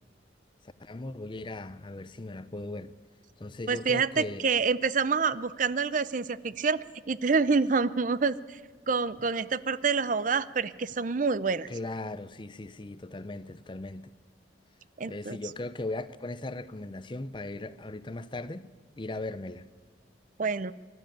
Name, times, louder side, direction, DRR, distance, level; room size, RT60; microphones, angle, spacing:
voice 1, 0.8-2.9 3.4-4.5 11.7-14.1 15.1-18.7 19.0-19.6, left 2 dB, 25° left, 0.6 m, -38 dB
voice 2, 3.7-8.6 8.9-11.7 15.0-15.4 20.4-20.7, right 5 dB, 45° right, 0.5 m, -27 dB
23.5 x 12.5 x 9.1 m
head